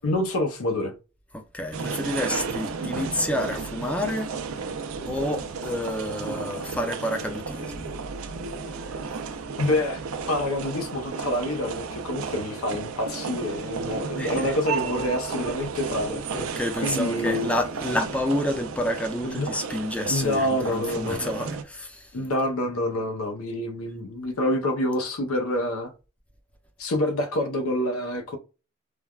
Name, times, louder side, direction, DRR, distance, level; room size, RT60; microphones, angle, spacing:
voice 1, 0.0-0.9 9.6-10.0 10.3-16.2 16.8-17.5 19.2-19.5 20.1-21.3 22.1-25.9 26.8-28.4, left 1 dB, 90° left, 0.7 m, -27 dB
voice 2, 1.3-4.3 5.1-8.0 8.8-9.0 14.2-14.5 16.3-22.1, left 1 dB, 5° left, 0.5 m, -29 dB
sound 1, 1.7-21.6, right 5 dB, 85° right, 0.5 m, -33 dB
3.2 x 2.2 x 2.3 m
head